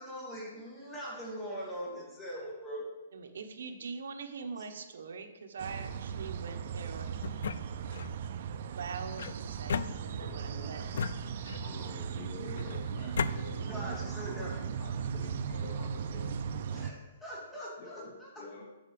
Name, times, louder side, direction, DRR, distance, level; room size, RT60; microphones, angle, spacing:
voice 1, 0.0-2.8 13.6-14.5 16.7-18.3, equal, 5° left, -5 dB, 2.0 m, -41 dB
voice 2, 3.1-7.1 8.7-10.9, right 5 dB, 70° right, 5 dB, 1.1 m, -43 dB
sound 1, 5.6-16.9, right 7 dB, 40° right, 0.5 m, -37 dB
sound 2, 7.2-8.2 9.2-10.4 10.9-11.8 12.6-13.4, left 6 dB, 60° left, 0.4 m, -36 dB
voice 3, 10.2-10.9 11.6-16.3 17.8-18.7, left 3 dB, 35° left, 3 dB, 1.2 m, -48 dB
8.3 x 5.8 x 6.9 m, 1.1 s
hypercardioid pair, 180°, 0 cm